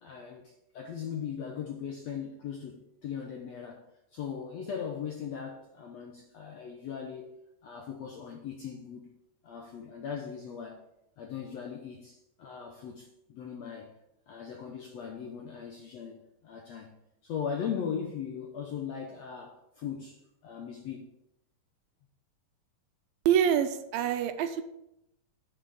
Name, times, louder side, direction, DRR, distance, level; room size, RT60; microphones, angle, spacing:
voice 1, 0.0-3.8 4.1-7.4 7.6-9.1 9.4-10.8 11.2-13.9 14.3-16.9 17.2-21.1, left 7 dB, 70° left, 1 dB, 1.6 m, -39 dB
voice 2, 23.3-24.6, right 9 dB, 80° right, 8 dB, 2.4 m, -26 dB
8.2 x 5.9 x 6.9 m, 0.82 s
omnidirectional pair, 4.2 m